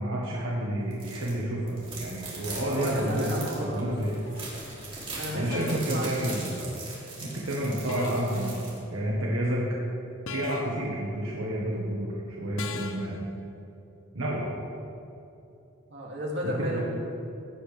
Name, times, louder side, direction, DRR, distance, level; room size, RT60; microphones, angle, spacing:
voice 1, 0.0-3.3 3.6-4.2 5.3-6.8 7.2-9.7 10.3-13.2 14.1-14.5 16.4-16.8, right 1 dB, 80° right, -4 dB, 1.4 m, -30 dB
sound 1, 0.9-1.3 1.7-8.8, right 3 dB, 25° right, 2.7 m, -40 dB
voice 2, 2.6-4.0 5.2-6.2 15.9-16.8, equal, 60° right, -4 dB, 2.4 m, -33 dB
sound 2, 4.3-4.5 5.5-6.0 7.9-8.4 10.3-10.9 12.6-13.2, left 4 dB, 75° left, 0.6 m, -38 dB
16.0 x 8.8 x 3.4 m, 2.8 s
head